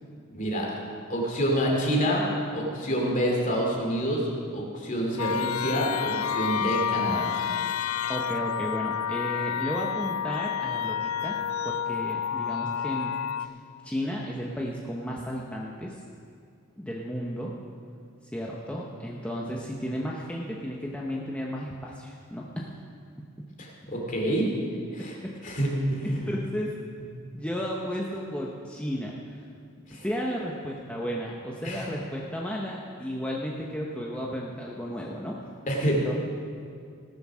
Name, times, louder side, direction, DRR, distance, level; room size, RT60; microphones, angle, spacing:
voice 1, 0.3-0.7 1.1-2.2 2.5-4.3 4.5-7.3 23.6-24.5 24.9-25.1 25.4-26.3 29.9-30.0 31.6-31.8 35.7-36.1, equal, 40° left, -2 dB, 2.7 m, -27 dB
sound 1, 5.2-13.5, left 8 dB, 85° left, 0.4 m, -29 dB
voice 2, 8.1-11.4 11.6-13.1 13.4-13.5 13.8-16.0 16.8-17.5 18.3-22.7 25.0-25.3 26.0-26.7 27.3-29.1 29.9-35.4 35.9-36.1, equal, 5° left, -3 dB, 0.9 m, -33 dB
18.0 x 7.2 x 6.2 m, 2.3 s
head